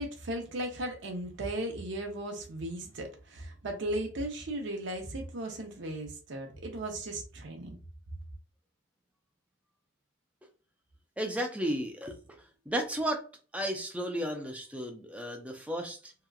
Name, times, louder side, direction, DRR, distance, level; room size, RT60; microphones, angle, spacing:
voice 1, 0.0-7.8, right 1 dB, 65° right, 0.6 m, -36 dB
voice 2, 11.2-12.4 12.7-13.2 13.5-16.1, equal, 5° right, 0.4 m, -33 dB
2.8 x 2.3 x 2.3 m
head